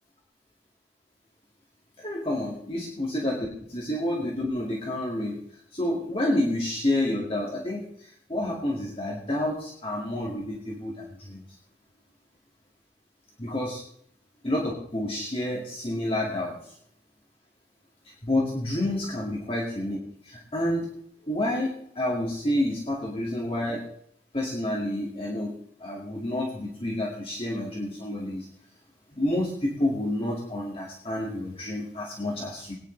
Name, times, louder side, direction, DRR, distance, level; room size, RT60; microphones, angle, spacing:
voice 1, 2.0-5.4 5.7-11.4 13.4-13.8 14.4-16.6 18.2-20.0 20.2-20.9 21.3-23.8 24.3-25.5 25.8-28.5 29.2-32.7, left 1 dB, 30° left, -3 dB, 2.2 m, -29 dB
21.0 x 9.9 x 3.3 m, 0.67 s
head